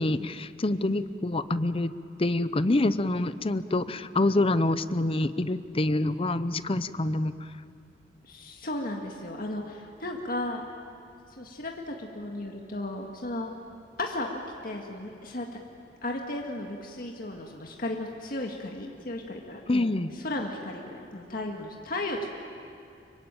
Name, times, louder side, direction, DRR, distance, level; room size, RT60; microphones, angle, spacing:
voice 1, 0.0-1.9 2.2-7.3 19.7-20.1, left 2 dB, 30° left, 13 dB, 0.7 m, -26 dB
voice 2, 8.2-10.6 11.4-13.5 14.0-14.3 14.6-15.5 16.0-19.9 20.1-22.3, left 1 dB, 50° left, 1 dB, 1.9 m, -35 dB
25.0 x 23.0 x 8.9 m, 2.5 s
head